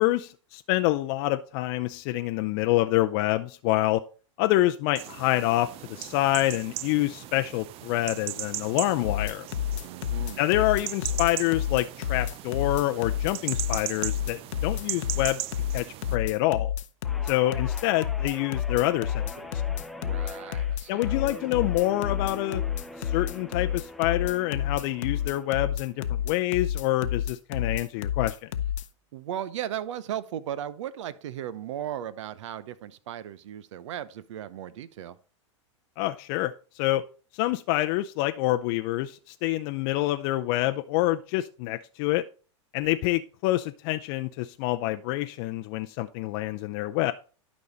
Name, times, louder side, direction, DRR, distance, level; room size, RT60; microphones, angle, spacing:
voice 1, 0.0-4.0 4.4-9.5 10.4-15.5 15.7-15.9 16.1-16.7 17.2-19.5 20.9-22.6 23.0-28.4 36.0-37.0 37.3-42.3 42.7-47.1, left 16 dB, 50° left, 0.5 m, -27 dB
sound 1, 5.0-16.2, right 13 dB, 35° right, 0.6 m, -38 dB
sound 2, 9.0-28.9, left 10 dB, 75° left, 0.8 m, -29 dB
voice 2, 9.8-10.4 20.0-21.1 29.1-35.2, right 10 dB, 70° right, 0.9 m, -36 dB
Guitar, 17.0-25.6 26.0-26.3, left 1 dB, ahead, 0.7 m, -43 dB
11.5 x 5.4 x 4.0 m
hypercardioid pair, 110°, 16 cm